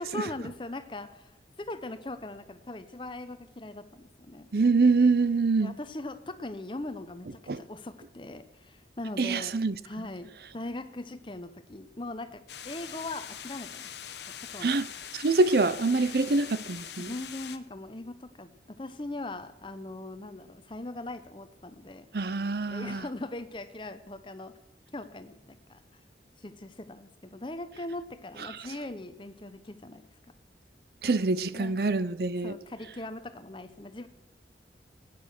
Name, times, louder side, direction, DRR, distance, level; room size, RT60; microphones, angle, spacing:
voice 1, 0.0-1.3 1.6-4.5 5.6-9.6 9.8-13.9 14.4-14.8 17.0-18.5 18.8-22.1 22.7-24.5 24.9-25.8 26.4-30.1 31.5-31.8 32.4-34.1, left 2 dB, 25° left, 0.8 m, -40 dB
voice 2, 4.5-5.7 7.5-7.6 9.2-9.8 14.6-17.1 22.1-23.0 31.0-32.5, right 3 dB, 60° right, 0.6 m, -25 dB
sound 1, 12.5-17.6, left 9 dB, 75° left, 1.0 m, -43 dB
17.5 x 9.5 x 6.5 m
head